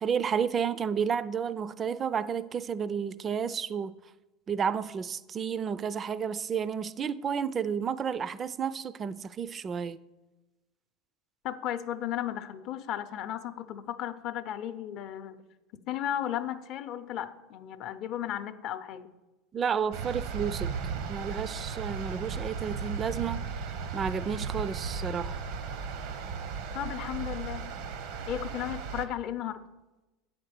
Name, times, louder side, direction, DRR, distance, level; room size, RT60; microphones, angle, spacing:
voice 1, 0.0-4.0 4.5-10.0 19.5-20.7 21.1-23.5 23.9-25.4, right 7 dB, 35° right, 0.4 m, -31 dB
voice 2, 11.4-15.4 15.7-19.1 26.7-27.7 28.3-29.7, left 11 dB, 55° left, 0.6 m, -35 dB
sound 1, 19.9-29.1, right 5 dB, 70° right, 0.8 m, -36 dB
8.8 x 4.3 x 6.7 m
hypercardioid pair, 90°, 0 cm